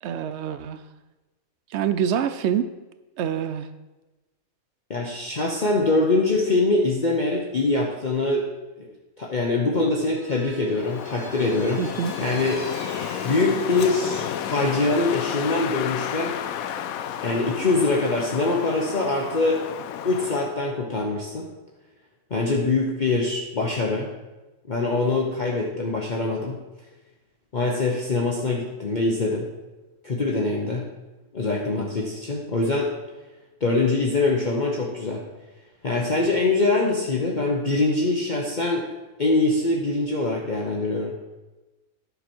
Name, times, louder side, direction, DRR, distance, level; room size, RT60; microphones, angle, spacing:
voice 1, 0.0-0.8 1.7-2.7 3.2-3.7 11.8-12.1, right 8 dB, 65° right, 12 dB, 0.8 m, -26 dB
voice 2, 4.9-8.5 8.8-8.9 9.2-12.7 13.2-16.4 17.2-19.6 20.0-21.5 22.3-24.1 24.7-26.6 27.5-29.5 30.0-30.8 31.3-32.9 33.6-35.2 35.8-38.9 39.2-41.1, left 3 dB, 35° left, -2 dB, 1.0 m, -23 dB
Vehicle, 9.9-16.3, equal, 45° right, 2.6 m, -44 dB
Wind, 10.7-20.6, left 9 dB, 80° left, 1.0 m, -32 dB
10.5 x 6.5 x 4.5 m, 1.1 s
omnidirectional pair, 1.5 m